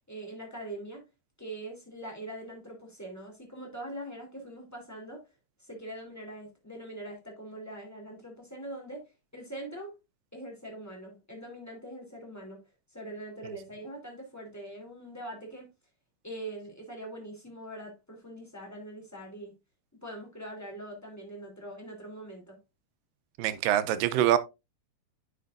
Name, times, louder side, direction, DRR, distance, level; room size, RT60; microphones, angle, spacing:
voice 1, 0.1-1.0 1.4-5.2 5.6-9.0 9.3-9.9 10.3-12.6 12.9-15.7 16.2-19.5 20.0-22.6, right 1 dB, 5° left, 2.7 m, -42 dB
voice 2, 23.4-24.4, right 12 dB, 85° right, 2.4 m, -24 dB
9.5 x 6.4 x 2.6 m
omnidirectional pair, 3.8 m